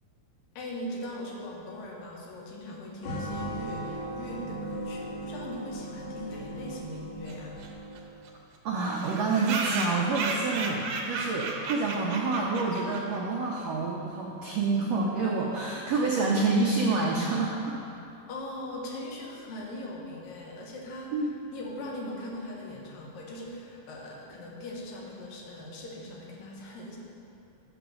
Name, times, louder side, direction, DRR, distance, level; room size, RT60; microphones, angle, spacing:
voice 1, 0.6-7.6 18.3-27.0, left 1 dB, 85° left, -2 dB, 2.9 m, -40 dB
sound 1, 3.0-8.2, right 1 dB, 60° left, 2.6 m, -38 dB
sound 2, 7.3-7.4 7.6-7.7 8.0-8.1 8.3-8.4 9.0-13.2, right 3 dB, 70° right, 1.5 m, -33 dB
voice 2, 8.6-17.8 21.1-21.3, right 3 dB, 90° right, -2 dB, 1.4 m, -28 dB
7.9 x 7.1 x 6.1 m, 2.7 s
omnidirectional pair, 3.9 m